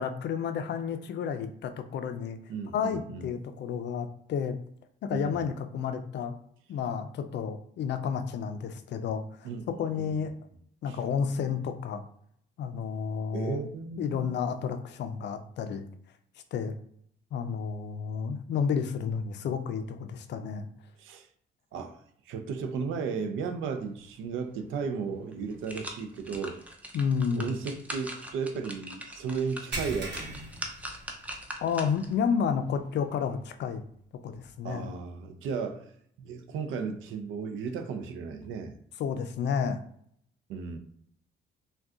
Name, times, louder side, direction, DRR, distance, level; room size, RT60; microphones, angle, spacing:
voice 1, 0.0-2.4 2.7-4.6 5.0-6.3 6.7-10.3 10.8-12.0 12.6-13.6 14.0-15.8 16.5-16.7 17.3-20.7 26.9-27.5 31.6-33.8 34.2-34.9 39.0-39.8, left 6 dB, 60° left, 0.4 m, -31 dB
voice 2, 2.5-3.3 5.1-5.4 9.4-9.7 9.9-10.1 10.9-11.0 13.3-14.3 21.0-21.3 21.7-22.0 22.3-26.6 27.3-30.4 34.6-35.9 36.2-38.7 40.5-40.8, right 5 dB, 85° right, 0.5 m, -34 dB
sound 1, 25.3-32.2 32.6-32.7, equal, 5° right, 0.5 m, -42 dB
sound 2, 29.7-31.6 31.9-32.2 32.6-32.7 34.4-34.5, right 2 dB, 60° right, 1.0 m, -38 dB
3.6 x 2.2 x 2.4 m
cardioid pair, 90°, 20 cm